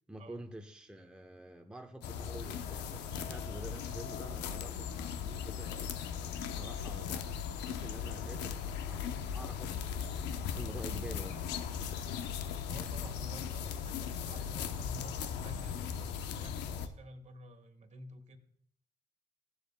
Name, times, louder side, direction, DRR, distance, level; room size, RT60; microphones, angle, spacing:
voice 1, 0.1-6.0 6.4-11.4, right 1 dB, 5° right, 0.9 m, -48 dB
sound 1, 2.0-16.9, left 7 dB, 85° left, 0.9 m, -38 dB
voice 2, 12.7-18.4, equal, 45° right, 1.7 m, -51 dB
15.0 x 9.9 x 2.3 m
supercardioid pair, 75°, 17 cm